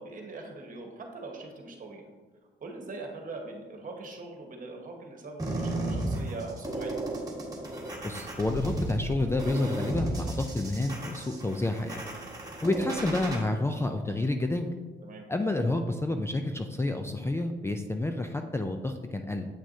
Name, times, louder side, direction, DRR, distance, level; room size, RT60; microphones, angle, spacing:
voice 1, 0.0-2.1 2.6-7.0 15.0-15.2, right 3 dB, 45° right, 2 dB, 1.3 m, -42 dB
sound 1, 5.4-13.4, right 1 dB, 20° right, 1.6 m, -34 dB
voice 2, 8.0-12.0 12.6-14.7 15.3-19.5, left 2 dB, 15° left, 5 dB, 0.4 m, -29 dB
8.3 x 6.0 x 2.7 m, 1.4 s
cardioid pair, 90°, 20 cm